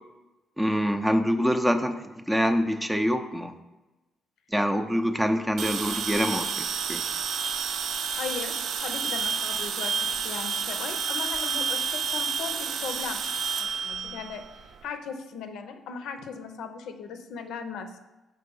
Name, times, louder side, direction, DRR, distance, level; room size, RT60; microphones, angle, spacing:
voice 1, 0.6-3.5 4.5-7.0, equal, 5° right, 7 dB, 0.5 m, -25 dB
sound 1, 5.6-14.8, right 6 dB, 65° right, 0.4 m, -30 dB
voice 2, 8.2-13.2 13.6-18.0, left 6 dB, 85° left, 7 dB, 0.5 m, -38 dB
5.3 x 3.7 x 5.4 m, 1.1 s
cardioid pair, 90°, 0 cm